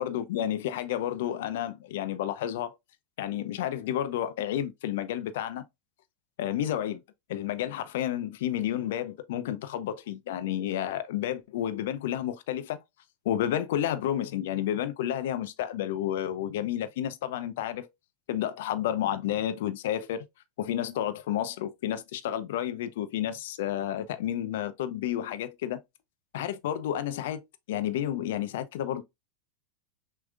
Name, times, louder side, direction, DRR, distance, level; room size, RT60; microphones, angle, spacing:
voice 1, 0.0-2.7 3.2-5.6 6.4-7.0 7.3-12.8 13.2-17.9 18.3-20.2 20.6-25.8 26.3-29.0, left 11 dB, 65° left, 0.7 m, -31 dB
6.2 x 3.4 x 2.4 m
hypercardioid pair, 90°, 0 cm